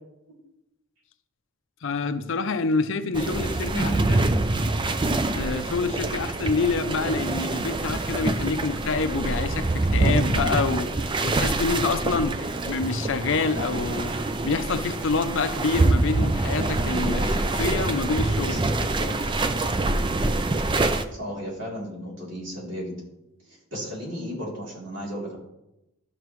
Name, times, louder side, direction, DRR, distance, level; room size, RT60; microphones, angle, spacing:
voice 1, 1.8-4.2 5.3-14.1 14.4-18.6, left 4 dB, 60° left, 10 dB, 0.5 m, -27 dB
sound 1, 3.1-21.0, right 2 dB, 20° right, 0.4 m, -25 dB
voice 2, 3.7-4.0 18.4-19.2 21.2-23.0 23.5-25.4, equal, 55° right, -5 dB, 3.3 m, -34 dB
12.5 x 5.8 x 3.1 m, 0.90 s
head